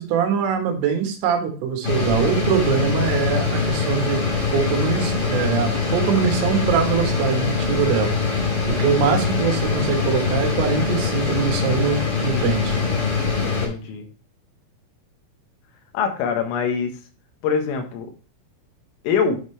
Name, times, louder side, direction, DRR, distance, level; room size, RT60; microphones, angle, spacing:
voice 1, 0.0-4.2 4.5-8.2 8.7-12.8, right 7 dB, 80° right, 4 dB, 3.9 m, -23 dB
sound 1, 1.8-13.7, left 4 dB, 30° left, 2.1 m, -23 dB
voice 2, 12.2-12.9 13.4-14.1 15.9-16.9 17.4-18.1 19.0-19.4, left 6 dB, 80° left, 5 dB, 3.9 m, -24 dB
10.5 x 5.2 x 3.2 m, 0.37 s
omnidirectional pair, 5.8 m